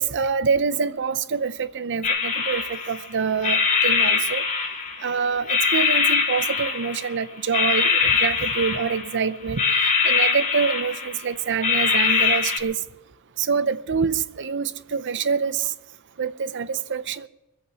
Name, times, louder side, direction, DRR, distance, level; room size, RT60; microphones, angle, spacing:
voice 1, 0.0-4.4 5.0-9.6 10.0-12.7 13.4-15.7 16.2-17.3, right 5 dB, 55° right, 0.7 m, -26 dB
sound 1, 2.0-3.1 3.4-5.1 5.5-7.2 7.5-9.2 9.6-11.2 11.6-12.6, left 5 dB, 35° left, 3.6 m, -22 dB
22.0 x 8.3 x 7.1 m
head